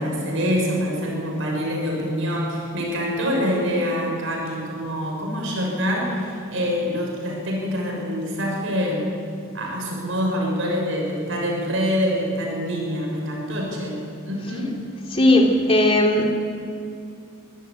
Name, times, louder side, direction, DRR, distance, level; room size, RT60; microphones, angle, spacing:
voice 1, 0.0-9.1 9.5-14.8, equal, 65° right, -1 dB, 6.3 m, -25 dB
voice 2, 15.1-16.3, left 1 dB, 25° left, 1 dB, 2.7 m, -17 dB
24.5 x 15.0 x 8.8 m, 2.5 s
head